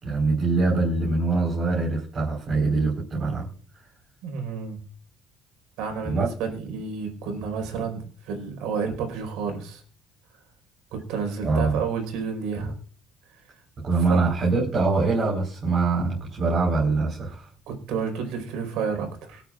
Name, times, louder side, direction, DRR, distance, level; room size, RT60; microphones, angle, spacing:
voice 1, 0.0-3.5 6.0-6.3 11.4-11.8 13.8-17.5, right 3 dB, 30° right, -4 dB, 4.7 m, -23 dB
voice 2, 4.2-4.8 5.8-9.8 10.9-12.7 14.1-14.2 17.7-19.4, right 5 dB, 90° right, 4 dB, 4.7 m, -30 dB
25.5 x 8.7 x 2.5 m, 0.43 s
cardioid pair, 165°, 0 cm